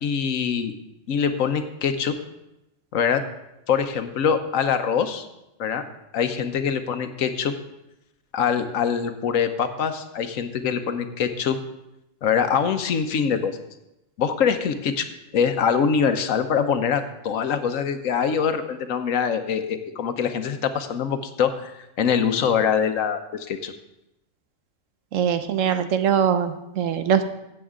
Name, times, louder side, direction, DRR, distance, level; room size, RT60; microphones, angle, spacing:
voice 1, 0.0-0.7 1.1-2.1 2.9-3.2 3.7-5.3 5.6-5.8 6.1-7.5 8.3-11.6 12.2-13.6 14.2-15.1 15.3-23.7, left 7 dB, 85° left, 8 dB, 1.2 m, -24 dB
voice 2, 25.1-27.3, right 8 dB, 75° right, 9 dB, 1.1 m, -22 dB
15.0 x 7.6 x 3.7 m, 0.89 s
omnidirectional pair, 1.4 m